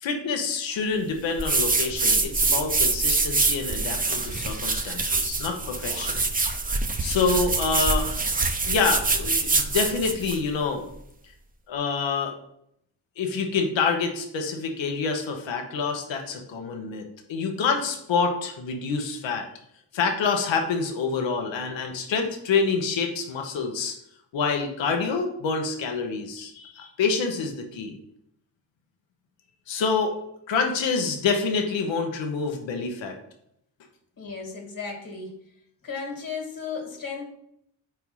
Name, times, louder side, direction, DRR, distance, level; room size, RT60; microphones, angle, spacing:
voice 1, 0.0-6.2 7.0-8.1 8.7-10.8 11.7-12.3 13.2-17.0 17.3-19.5 19.9-24.0 24.3-28.0 29.7-30.2 30.5-33.2, left 5 dB, 80° left, 3 dB, 1.1 m, -27 dB
sound 1, 1.4-10.4, right 3 dB, 20° right, 0.6 m, -25 dB
voice 2, 34.2-35.5 35.8-37.2, left 5 dB, 50° left, 2 dB, 1.9 m, -35 dB
4.8 x 4.5 x 5.5 m, 0.73 s
cardioid pair, 100°, 45 cm